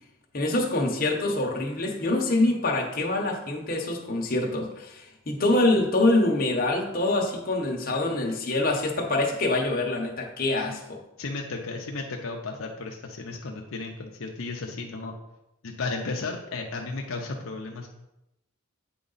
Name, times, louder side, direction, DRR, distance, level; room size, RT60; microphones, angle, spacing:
voice 1, 0.3-11.0, left 2 dB, 40° left, 1 dB, 1.0 m, -25 dB
voice 2, 11.2-15.1 15.6-17.9, left 3 dB, 70° left, 1 dB, 0.6 m, -34 dB
8.5 x 3.9 x 4.0 m, 0.90 s
head